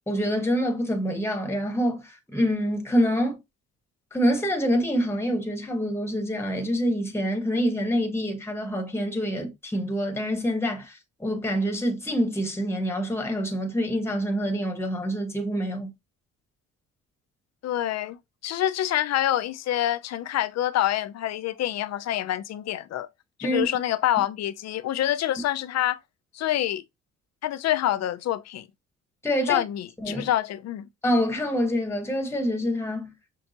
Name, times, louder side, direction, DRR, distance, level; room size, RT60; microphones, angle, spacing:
voice 1, 0.1-3.4 4.1-15.9 23.4-23.7 29.2-29.6 30.0-30.3 31.0-33.1, equal, 10° left, 1.1 m, -26 dB
voice 2, 17.6-23.1 23.4-26.0 26.3-26.8 27.4-28.7 29.5-30.9, left 12 dB, 60° left, 0.5 m, -26 dB
6.0 x 2.3 x 2.8 m
cardioid pair, 90°, 30 cm